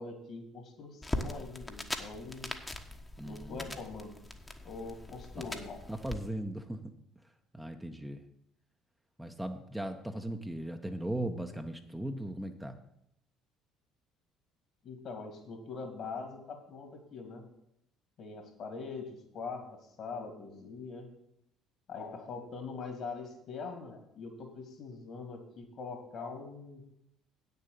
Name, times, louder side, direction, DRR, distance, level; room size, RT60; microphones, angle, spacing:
voice 1, 0.0-2.5 3.2-4.2 4.6-5.8 14.8-17.4 18.2-19.7 20.0-21.1 21.9-26.8, left 4 dB, 55° left, 4 dB, 2.8 m, -43 dB
sound 1, 1.0-6.2, left 2 dB, 20° left, 1.3 m, -41 dB
voice 2, 3.2-3.7 5.4-5.5 5.9-6.8 7.5-8.2 9.2-12.8, right 1 dB, 5° right, 4 dB, 1.0 m, -38 dB
8.7 x 6.8 x 6.8 m, 0.77 s
hypercardioid pair, 60°, 0 cm